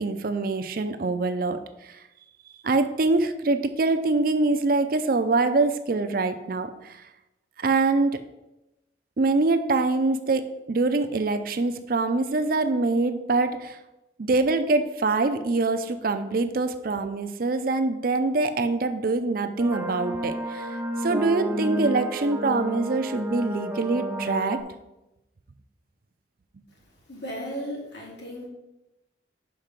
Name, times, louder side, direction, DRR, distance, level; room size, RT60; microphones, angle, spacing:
voice 1, 0.0-2.0 2.6-7.0 7.6-8.2 9.2-13.8 14.2-20.7 21.0-24.6, right 3 dB, 55° right, 9 dB, 0.5 m, -24 dB
sound 1, 19.6-24.6, equal, 10° right, 0.8 m, -31 dB
voice 2, 27.1-28.5, equal, 75° left, -2 dB, 2.4 m, -35 dB
5.5 x 5.2 x 5.9 m, 0.94 s
head